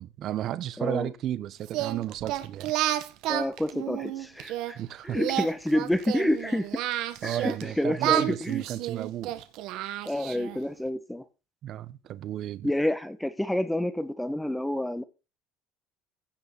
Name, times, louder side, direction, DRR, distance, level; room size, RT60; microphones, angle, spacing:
voice 1, 0.0-2.7 4.7-5.2 7.2-9.3 11.6-12.7, right 12 dB, 45° right, 1.2 m, -33 dB
voice 2, 0.8-1.1 3.3-4.8 5.0-6.7 7.2-8.6 10.0-11.2 12.6-15.0, left 1 dB, 5° left, 1.5 m, -28 dB
Singing, 1.7-4.7 5.1-7.6 8.0-10.6, right 14 dB, 65° right, 1.8 m, -30 dB
16.5 x 6.5 x 6.3 m
cardioid pair, 145°, 0 cm